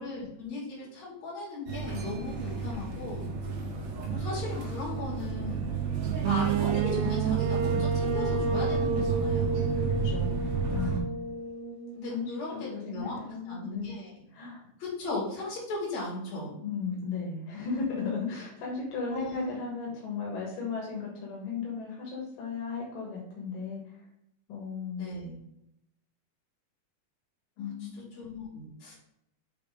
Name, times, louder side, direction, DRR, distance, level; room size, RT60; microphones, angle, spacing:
voice 1, 0.0-3.3 4.1-5.7 6.3-9.7 10.7-11.0 11.9-13.2 13.5-14.1 14.8-16.5 19.1-19.5 25.0-25.3 27.6-27.7 28.2-28.9, left 2 dB, 55° left, -6 dB, 4.1 m, -37 dB
sound 1, 1.7-11.0, right 7 dB, 65° right, 1.9 m, -31 dB
sound 2, 6.2-12.1, right 3 dB, 85° right, 1.4 m, -31 dB
voice 2, 9.8-11.2 12.1-13.9 14.3-14.6 16.6-24.0 24.5-25.2 27.6-28.0, left 5 dB, 85° left, -3 dB, 3.1 m, -36 dB
6.9 x 3.7 x 5.2 m, 0.78 s
omnidirectional pair, 3.8 m